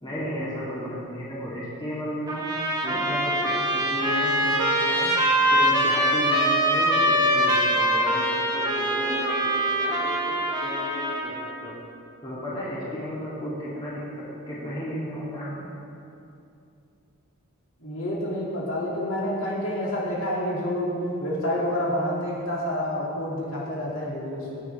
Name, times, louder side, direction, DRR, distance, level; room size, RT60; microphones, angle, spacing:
voice 1, 0.0-2.5 2.8-5.2 5.5-11.3 11.6-11.7 12.2-14.0 14.5-15.6, equal, 20° left, -8 dB, 3.0 m, -33 dB
Trumpet, 2.3-11.5, equal, 20° right, 1.3 m, -23 dB
voice 2, 17.8-24.6, equal, 65° left, -6 dB, 2.8 m, -28 dB
20.0 x 9.6 x 3.6 m, 2.6 s
head